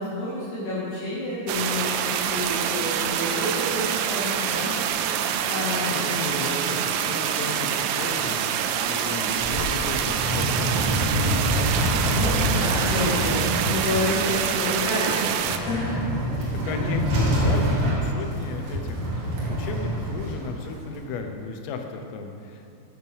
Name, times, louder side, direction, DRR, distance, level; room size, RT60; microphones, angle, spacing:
voice 1, 0.0-4.7 5.4-6.2 12.0-16.0, left 1 dB, 60° left, -10 dB, 3.9 m, -29 dB
sound 1, 1.5-15.6, right 9 dB, 90° right, 3.1 m, -26 dB
voice 2, 5.9-10.9 16.5-19.0 19.5-22.8, left 4 dB, 90° left, 5 dB, 3.5 m, -34 dB
sound 2, 9.3-21.0, equal, 55° right, 2.3 m, -27 dB
9.0 x 8.4 x 6.3 m, 2.5 s
omnidirectional pair, 5.7 m